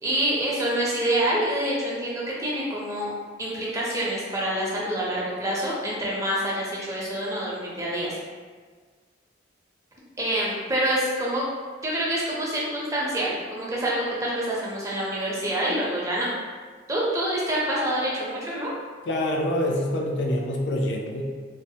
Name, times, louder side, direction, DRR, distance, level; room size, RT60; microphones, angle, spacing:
voice 1, 0.0-3.1 3.4-8.2 10.2-11.4 11.8-16.3 16.9-18.7, right 1 dB, 15° right, -6 dB, 0.5 m, -26 dB
voice 2, 19.1-21.2, left 1 dB, 60° left, 0 dB, 0.4 m, -26 dB
3.1 x 2.0 x 2.7 m, 1.5 s
head